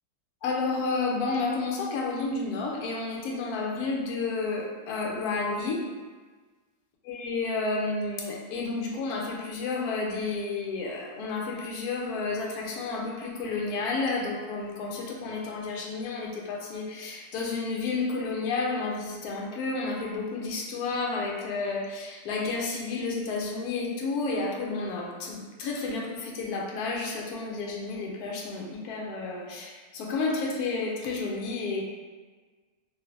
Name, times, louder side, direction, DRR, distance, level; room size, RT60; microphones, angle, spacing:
voice 1, 0.4-5.8 7.0-31.8, left 3 dB, 80° left, -1 dB, 1.1 m, -31 dB
3.1 x 2.9 x 2.7 m, 1.4 s
omnidirectional pair, 1.6 m